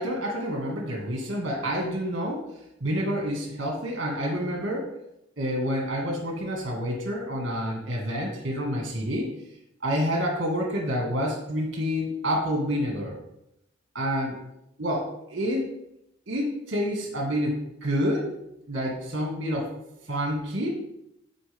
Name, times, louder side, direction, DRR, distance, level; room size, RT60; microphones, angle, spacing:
voice 1, 0.0-2.4 2.8-4.9 5.4-9.3 9.8-13.2 13.9-14.3 14.8-15.6 16.3-18.3 18.7-19.7 20.1-20.7, equal, 55° right, -1 dB, 1.8 m, -28 dB
10.0 x 4.5 x 3.6 m, 0.82 s
head